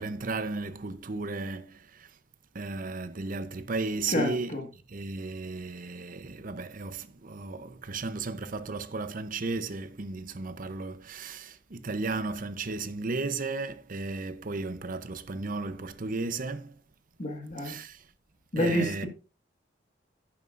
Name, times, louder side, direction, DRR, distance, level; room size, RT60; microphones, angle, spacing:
voice 1, 0.0-2.1 2.5-4.6 4.9-16.8 17.6-18.0 18.6-19.1, right 3 dB, 50° right, 0.7 m, -34 dB
voice 2, 4.1-4.7 17.2-17.8 18.5-19.1, left 1 dB, 40° left, 1.8 m, -29 dB
11.0 x 8.8 x 2.5 m
head